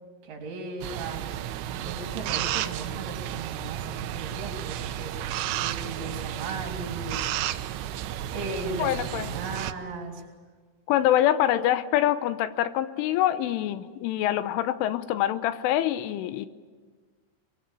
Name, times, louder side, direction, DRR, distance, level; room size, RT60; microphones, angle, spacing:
voice 1, 0.2-1.4 1.7-7.4 8.3-10.2, right 3 dB, 55° right, 2 dB, 5.1 m, -37 dB
sound 1, 0.8-9.7, right 12 dB, 75° right, 2.9 m, -32 dB
voice 2, 8.8-9.3 10.9-16.5, left 12 dB, 85° left, 12 dB, 3.4 m, -25 dB
23.5 x 23.0 x 9.3 m, 1.5 s
omnidirectional pair, 5.6 m